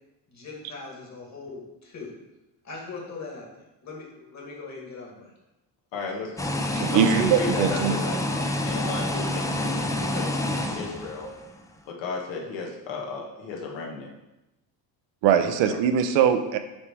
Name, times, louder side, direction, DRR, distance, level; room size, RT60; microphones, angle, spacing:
voice 1, 0.3-2.1 2.6-5.3, left 4 dB, 40° left, -2 dB, 2.1 m, -40 dB
voice 2, 5.9-11.3 11.9-14.1 15.6-15.8, left 3 dB, 85° left, 0 dB, 1.4 m, -34 dB
sound 1, 6.4-11.5, left 1 dB, 10° left, 0.4 m, -28 dB
voice 3, 6.7-7.9 15.2-16.6, right 8 dB, 85° right, 8 dB, 0.7 m, -21 dB
7.3 x 3.3 x 4.6 m, 0.97 s
cardioid pair, 115°, 43 cm